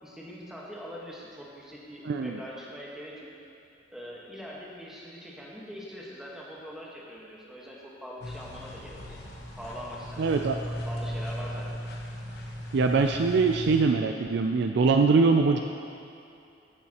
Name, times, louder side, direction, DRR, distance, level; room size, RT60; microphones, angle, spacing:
voice 1, 0.0-3.3 3.9-9.2 9.6-10.5 10.8-11.7, equal, 5° right, -5 dB, 1.4 m, -42 dB
voice 2, 2.1-2.4 10.2-10.6 12.7-15.6, right 4 dB, 60° right, 4 dB, 0.4 m, -23 dB
sound 1, 8.2-13.8, equal, 60° left, 1.2 m, -37 dB
14.5 x 7.0 x 2.9 m, 2.6 s
head